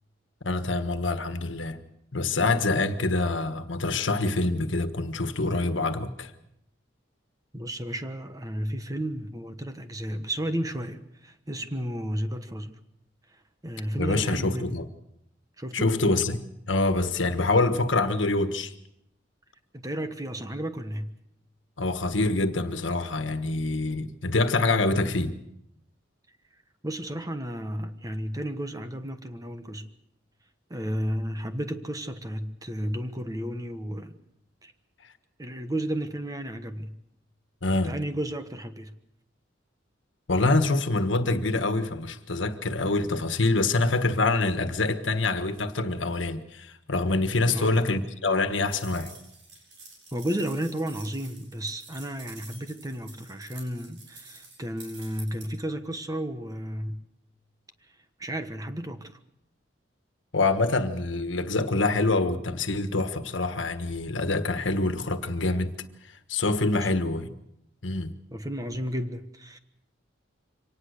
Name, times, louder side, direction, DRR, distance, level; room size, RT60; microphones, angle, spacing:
voice 1, 0.4-1.8 2.1-6.3 14.0-14.9 15.7-16.4 16.7-18.7 21.8-25.4 37.6-38.0 40.3-49.1 60.3-65.7 66.1-67.3 67.8-68.1, left 2 dB, 85° left, 1.5 m, -25 dB
voice 2, 7.5-12.8 13.6-14.8 15.6-16.0 19.7-21.1 26.8-29.9 30.7-34.2 34.6-34.7 35.4-37.0 37.7-38.9 47.5-47.8 50.1-57.0 58.2-59.2 66.7-66.9 68.3-69.6, right 1 dB, 20° right, 1.3 m, -33 dB
sound 1, 48.7-55.5, right 3 dB, 80° right, 8.0 m, -48 dB
24.5 x 18.5 x 6.6 m
head